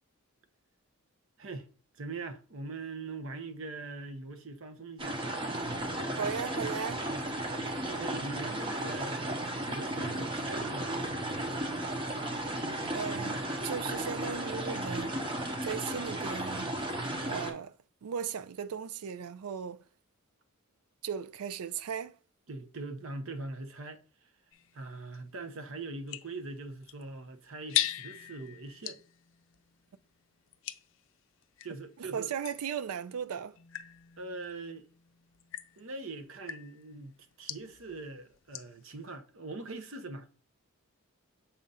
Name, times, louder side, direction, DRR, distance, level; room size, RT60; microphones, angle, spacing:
voice 1, 1.4-1.7 1.9-5.3 7.1-7.2 7.8-9.4 9.7-11.4 22.5-24.0 24.7-29.0 31.6-32.3 34.2-34.8 35.8-40.3, right 3 dB, 60° right, 0.8 m, -42 dB
sound 1, 5.0-17.5, right 1 dB, 20° right, 0.8 m, -34 dB
voice 2, 6.2-7.0 12.9-15.2 15.6-16.7 17.3-17.8 18.0-19.8 21.0-22.2 32.0-33.6, right 7 dB, 80° right, 0.4 m, -37 dB
sound 2, 24.5-31.8 32.4-38.9, left 12 dB, 60° left, 0.5 m, -41 dB
7.0 x 2.5 x 5.4 m
head